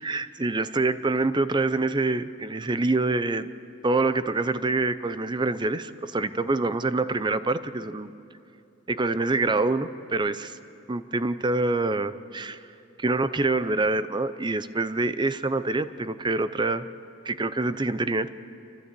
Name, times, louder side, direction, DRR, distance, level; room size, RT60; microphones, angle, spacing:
voice 1, 0.0-3.5 3.8-8.1 8.9-10.6 10.9-12.6 13.0-16.9 17.3-18.3, right 3 dB, 25° right, 13 dB, 0.6 m, -26 dB
29.0 x 12.5 x 8.3 m, 2.6 s
head